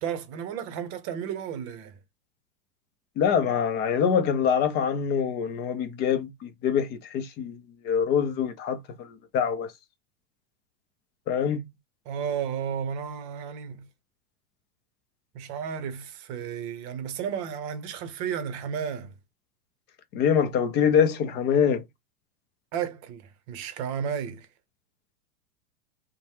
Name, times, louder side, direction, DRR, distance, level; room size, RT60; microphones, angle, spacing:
voice 1, 0.0-2.0 12.1-13.9 15.3-19.1 22.7-24.5, right 8 dB, 45° right, 0.8 m, -33 dB
voice 2, 3.2-9.7 11.3-11.7 20.1-21.8, left 7 dB, 25° left, 0.4 m, -25 dB
3.0 x 2.2 x 2.8 m
hypercardioid pair, 115°, 45 cm